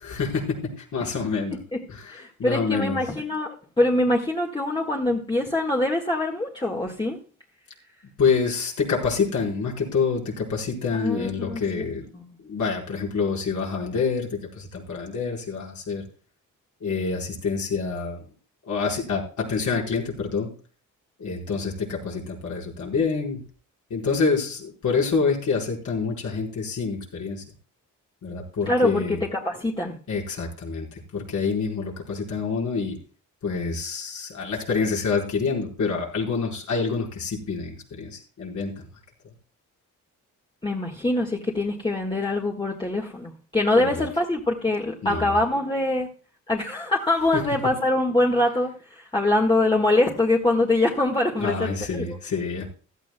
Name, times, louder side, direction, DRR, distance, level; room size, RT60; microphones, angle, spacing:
voice 1, 0.0-1.6 1.9-3.0 8.2-12.1 12.4-16.0 16.8-18.2 18.7-20.5 21.2-23.4 23.9-27.4 28.2-29.2 30.1-33.0 33.4-38.8 43.7-44.0 45.0-45.4 47.3-47.4 51.4-52.7, left 5 dB, 65° left, -2 dB, 4.8 m, -27 dB
voice 2, 2.1-7.2 11.0-11.8 12.1-12.2 28.6-30.0 40.6-46.1 46.5-52.2, left 2 dB, 15° left, -1 dB, 1.7 m, -24 dB
16.0 x 13.5 x 2.3 m, 0.39 s
cardioid pair, 110°, 32 cm